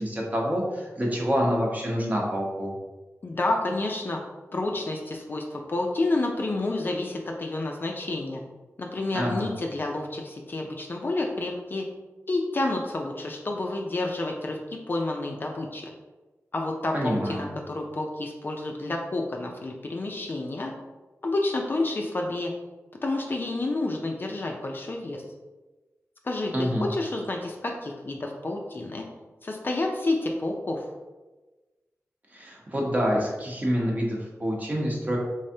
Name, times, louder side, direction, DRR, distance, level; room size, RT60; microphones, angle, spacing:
voice 1, 0.0-2.7 9.1-9.5 16.9-17.5 26.5-26.9 32.3-35.2, equal, 30° right, -2 dB, 0.8 m, -27 dB
voice 2, 3.2-4.2 4.5-8.4 8.8-11.9 12.3-15.9 16.5-20.7 21.2-22.5 23.0-25.2 26.2-29.1 29.4-30.8, left 2 dB, 40° left, 1 dB, 0.4 m, -29 dB
3.4 x 3.3 x 2.7 m, 1.2 s
wide cardioid pair, 100°, 5 cm